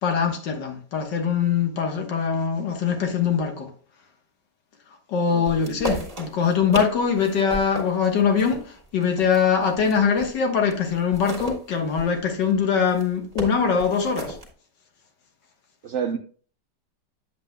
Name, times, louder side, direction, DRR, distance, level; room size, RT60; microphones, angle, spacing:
voice 1, 0.0-3.7 5.1-14.4, left 6 dB, 80° left, 1.9 m, -22 dB
voice 2, 5.3-5.9 15.8-16.2, right 7 dB, 70° right, 0.6 m, -30 dB
sound 1, 5.5-10.4 10.7-14.5, right 1 dB, 20° right, 1.7 m, -35 dB
8.7 x 7.9 x 2.2 m
omnidirectional pair, 1.9 m